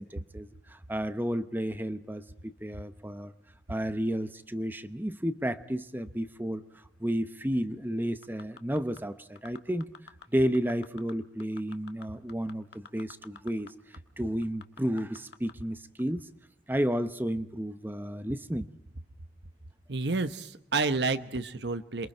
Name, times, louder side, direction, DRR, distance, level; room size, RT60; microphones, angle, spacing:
voice 1, 0.0-3.3 3.7-6.6 7.0-9.9 10.3-13.7 14.2-16.3 16.7-18.7, equal, 10° right, 11 dB, 0.8 m, -32 dB
sound 1, 8.2-9.0 9.4-10.2 10.5-11.1 11.4-13.7 13.9-14.0 14.4-15.5 16.0-16.1, left 5 dB, 70° left, 1.4 m, -48 dB
voice 2, 19.9-22.1, right 3 dB, 75° right, 10 dB, 1.1 m, -30 dB
27.5 x 23.0 x 4.5 m, 0.77 s
head